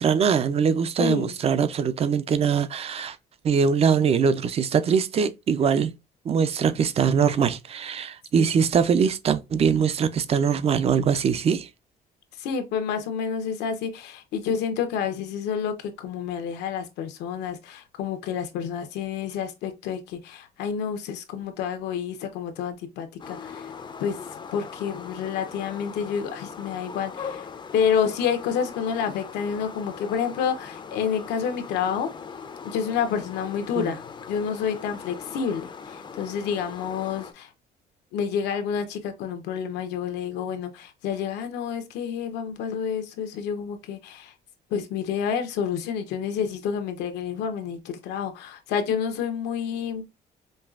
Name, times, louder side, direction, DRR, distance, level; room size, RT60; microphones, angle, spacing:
voice 1, 0.0-3.2 3.4-5.9 6.3-11.7 33.8-33.9, right 6 dB, 35° right, 0.5 m, -22 dB
voice 2, 1.0-1.4 8.4-8.5 12.4-23.7 24.0-27.5 27.7-32.1 32.6-37.5 38.1-44.3 44.7-50.0, left 7 dB, 85° left, 0.9 m, -29 dB
sound 1, 23.2-37.3, left 6 dB, 30° left, 0.5 m, -40 dB
5.3 x 2.3 x 2.4 m
cardioid pair, 110°, 17 cm